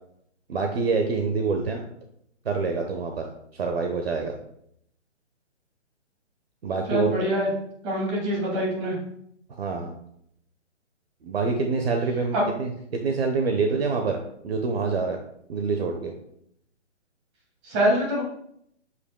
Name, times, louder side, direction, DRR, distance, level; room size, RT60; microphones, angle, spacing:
voice 1, 0.5-1.8 2.4-3.3 3.5-4.3 6.6-7.1 9.5-9.9 11.2-15.2 15.5-16.1, right 4 dB, 55° right, 4 dB, 1.2 m, -26 dB
voice 2, 6.9-7.5 7.8-8.9 12.3-12.4 17.6-18.2, equal, 25° right, -3 dB, 2.5 m, -24 dB
8.4 x 8.2 x 2.3 m, 0.72 s
hypercardioid pair, 160°, 36 cm